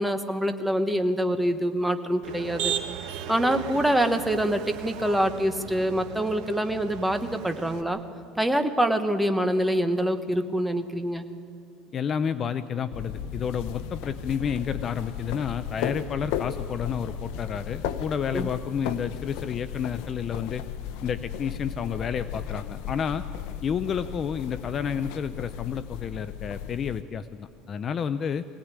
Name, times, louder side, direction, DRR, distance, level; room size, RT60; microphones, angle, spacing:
voice 1, 0.0-2.7 3.3-8.0 8.4-11.3 18.3-18.5, right 1 dB, 5° right, 7 dB, 1.0 m, -25 dB
Motor vehicle (road), 2.2-7.8, right 9 dB, 70° right, 1.9 m, -36 dB
voice 2, 11.9-20.6 21.0-23.2 23.6-28.5, left 7 dB, 25° left, 11 dB, 0.5 m, -30 dB
sound 1, 12.9-27.0, left 9 dB, 70° left, 1.0 m, -35 dB
23.0 x 17.5 x 9.6 m, 2.8 s
cardioid pair, 165°, 0 cm